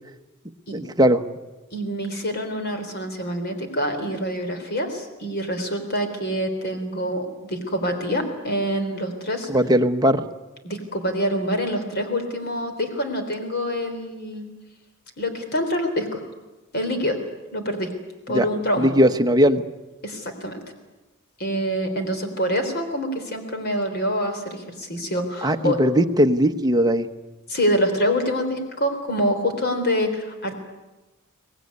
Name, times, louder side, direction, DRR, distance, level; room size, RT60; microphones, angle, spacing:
voice 1, 0.7-1.2 9.5-10.3 18.3-18.4 18.8-19.6 25.4-27.1, equal, 20° right, 6 dB, 1.0 m, -19 dB
voice 2, 1.7-9.5 10.6-14.5 15.2-16.2 16.7-17.2 17.5-17.9 18.3-18.9 20.0-20.6 21.4-25.8 27.5-30.6, equal, 50° left, 6 dB, 3.8 m, -26 dB
24.5 x 18.5 x 9.6 m, 1.1 s
head